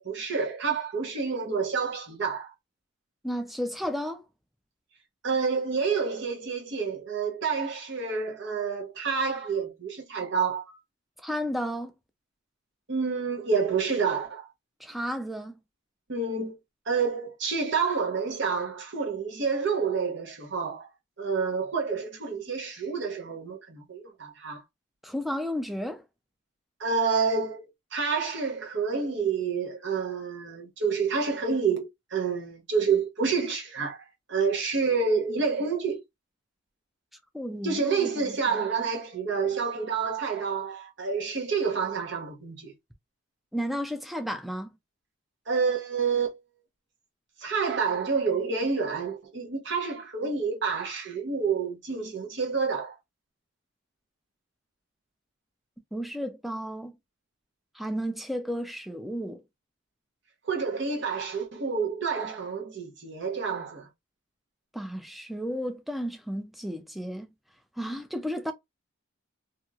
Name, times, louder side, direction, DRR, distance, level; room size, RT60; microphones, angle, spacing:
voice 1, 0.0-2.5 5.2-10.8 12.9-14.5 16.1-16.5 16.9-20.9 21.2-24.6 26.8-36.0 37.6-42.7 45.5-46.4 47.4-53.0 60.4-63.9, right 5 dB, 55° right, 1.0 m, -28 dB
voice 2, 3.2-4.2 11.2-11.9 14.8-15.5 25.0-26.0 37.3-38.4 43.5-44.7 55.9-56.9 57.7-59.4 64.7-67.3 67.8-68.5, equal, ahead, 0.4 m, -33 dB
3.0 x 2.7 x 2.4 m
head